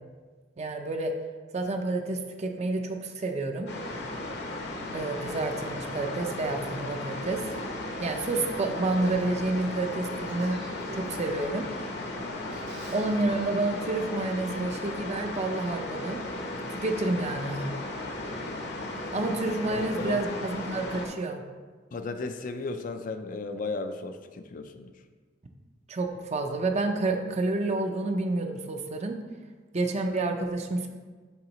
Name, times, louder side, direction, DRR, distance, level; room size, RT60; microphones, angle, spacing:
voice 1, 0.6-1.1 1.5-3.7 4.9-7.5 8.0-10.6 10.9-11.7 12.9-16.2 16.7-17.8 19.1-21.4 25.9-29.2 29.7-30.9, right 2 dB, 40° right, 4 dB, 0.6 m, -29 dB
sound 1, 3.7-21.1, left 2 dB, 65° left, 1.0 m, -36 dB
Male speech man speaking / Female speech woman speaking / Conversation, 6.0-13.7, right 1 dB, 75° right, 1.7 m, -52 dB
voice 2, 19.7-20.2 21.9-24.9, left 3 dB, 50° left, 7 dB, 0.4 m, -35 dB
10.5 x 3.9 x 3.0 m, 1.4 s
head